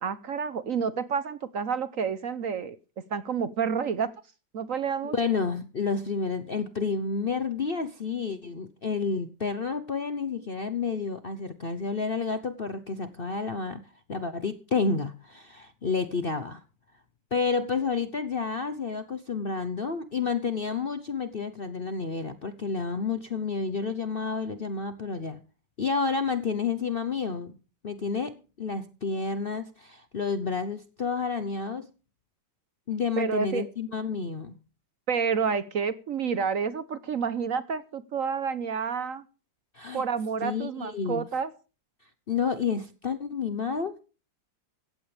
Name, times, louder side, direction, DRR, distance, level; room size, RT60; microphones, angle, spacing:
voice 1, 0.0-2.8 3.1-4.1 4.5-5.1 33.2-33.7 35.1-39.2 39.9-41.5, right 6 dB, 55° right, 1.1 m, -29 dB
voice 2, 5.0-16.6 17.3-25.4 25.8-27.5 27.8-31.9 32.9-34.6 39.7-40.0 40.4-41.3 42.3-44.0, left 5 dB, 45° left, 0.8 m, -30 dB
16.0 x 15.0 x 3.4 m
omnidirectional pair, 2.0 m